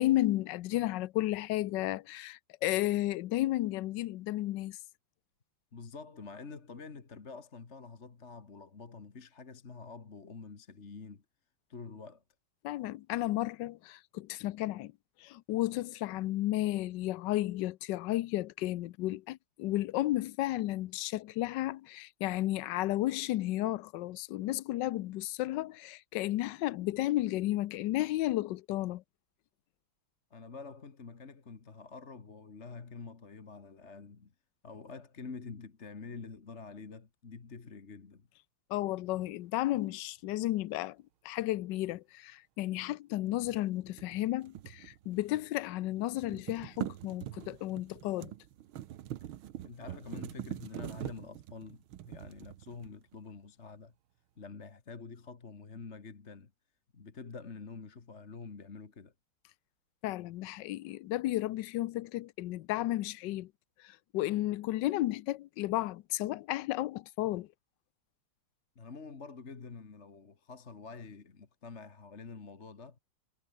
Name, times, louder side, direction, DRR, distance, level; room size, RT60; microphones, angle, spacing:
voice 1, 0.0-4.8 12.6-14.9 15.2-29.0 38.7-41.0 41.2-48.3 60.0-63.5 63.8-67.5, left 16 dB, 70° left, 1.2 m, -33 dB
voice 2, 5.7-11.2 11.7-12.2 30.3-34.3 34.6-38.3 49.6-53.9 54.4-56.5 56.9-59.1 68.8-73.0, left 4 dB, 35° left, 2.0 m, -47 dB
sound 1, 43.3-45.6 45.9-53.2, right 12 dB, 80° right, 1.8 m, -44 dB
omnidirectional pair, 2.3 m